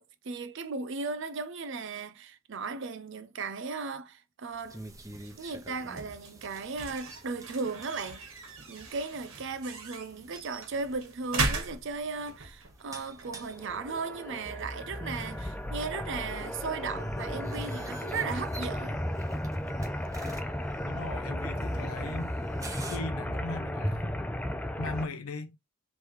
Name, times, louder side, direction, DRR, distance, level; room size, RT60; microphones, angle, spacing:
voice 1, 0.0-4.8 5.4-8.2 8.7-19.0, right 4 dB, 55° right, 0.5 m, -36 dB
sound 1, 4.5-17.2, right 3 dB, 70° right, 1.5 m, -40 dB
sound 2, 4.6-23.0, right 2 dB, 15° right, 0.8 m, -50 dB
sound 3, 13.5-25.1, left 1 dB, 5° left, 0.4 m, -34 dB
voice 2, 20.9-22.3 22.9-24.2 24.8-25.6, left 3 dB, 80° left, 0.6 m, -38 dB
3.3 x 3.2 x 4.6 m
head